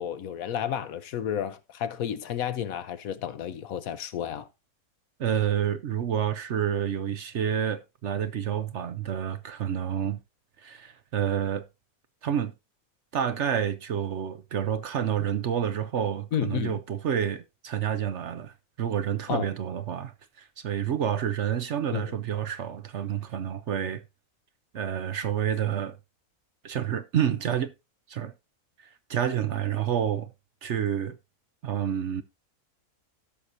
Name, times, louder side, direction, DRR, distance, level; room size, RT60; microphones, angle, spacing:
voice 1, 0.0-4.5 16.3-16.8 19.3-19.5 21.9-22.2, left 9 dB, 70° left, 1.2 m, -31 dB
voice 2, 5.2-10.2 10.6-11.7 12.2-12.5 13.1-24.0 24.7-26.0 26.6-27.7 28.1-28.3 29.1-30.3 30.6-31.2 31.6-32.2, right 9 dB, 60° right, 0.9 m, -29 dB
17.0 x 6.5 x 2.6 m
omnidirectional pair, 1.6 m